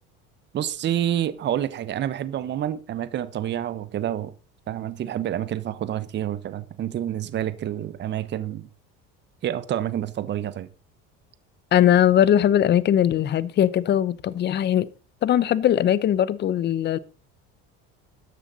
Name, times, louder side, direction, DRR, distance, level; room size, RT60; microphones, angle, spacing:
voice 1, 0.5-4.3 4.7-8.7 9.4-10.7, right 11 dB, 40° right, 1.1 m, -28 dB
voice 2, 11.7-14.9 15.2-17.0, left 10 dB, 35° left, 0.9 m, -20 dB
14.0 x 10.0 x 4.1 m
cardioid pair, 130°, 29 cm